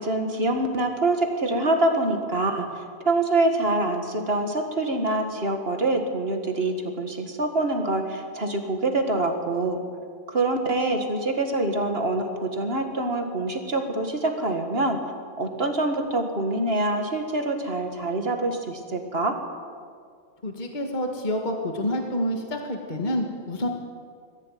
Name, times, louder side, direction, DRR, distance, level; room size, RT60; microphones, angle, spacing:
voice 1, 0.0-9.8 10.3-15.0 15.4-19.4, right 2 dB, 50° right, 4 dB, 2.3 m, -25 dB
voice 2, 20.4-23.7, left 1 dB, 35° left, 2 dB, 2.0 m, -28 dB
21.0 x 14.5 x 9.4 m, 2.1 s
omnidirectional pair, 1.3 m